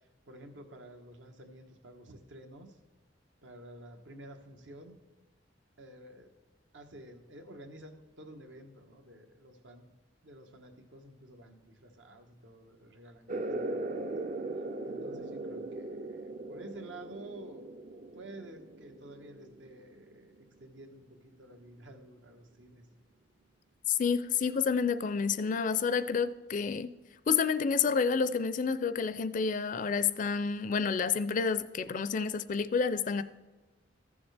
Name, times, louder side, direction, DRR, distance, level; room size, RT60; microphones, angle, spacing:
voice 1, 0.3-2.8 3.4-5.0 5.8-6.3 6.7-9.9 10.2-14.2 14.8-17.7 18.1-22.9, right 1 dB, 80° right, 5 dB, 1.2 m, -51 dB
sound 1, 13.3-20.4, right 2 dB, 45° right, 0.5 m, -39 dB
voice 2, 23.9-26.9 27.3-33.2, left 5 dB, 45° left, 13 dB, 0.4 m, -29 dB
14.5 x 7.1 x 3.3 m, 1.2 s
head